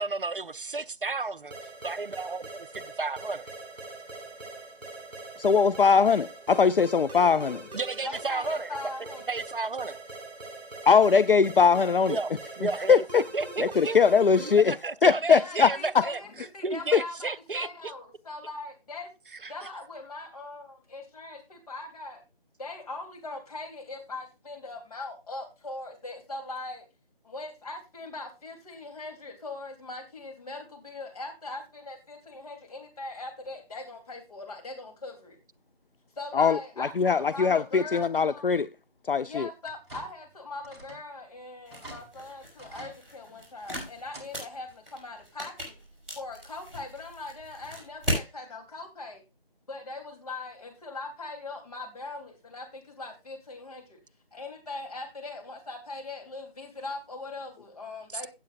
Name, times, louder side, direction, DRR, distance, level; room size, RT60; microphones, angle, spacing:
voice 1, 0.0-1.5 1.8-3.5 7.7-8.7 9.3-10.0 12.1-14.0 14.3-17.9 19.4-19.5 58.1-58.3, right 3 dB, 60° right, 0.6 m, -33 dB
sound 1, 1.5-14.8, right 2 dB, 45° right, 3.4 m, -43 dB
voice 2, 5.4-7.6 10.9-12.2 12.9-13.2 13.6-14.8 15.0-15.7 16.9-17.0 36.3-38.7 39.1-39.5, left 5 dB, 65° left, 0.5 m, -21 dB
voice 3, 8.0-9.2 15.3-19.1 19.5-22.2 22.6-26.8 27.2-35.4 36.1-38.5 39.2-45.8 46.1-49.2 49.7-54.0 54.3-58.3, left 2 dB, 40° left, 3.4 m, -40 dB
Secure Door Unlocking, 39.6-40.3 40.6-41.1 41.4-41.5 41.7-42.0 42.6-43.0 43.6-44.3 44.6-44.7 46.1-46.2 46.7-46.8, right 1 dB, 25° right, 2.6 m, -45 dB
sound 2, 41.6-48.3, equal, ahead, 4.9 m, -38 dB
16.5 x 8.1 x 2.5 m
figure-of-eight pair, 160°, 30 cm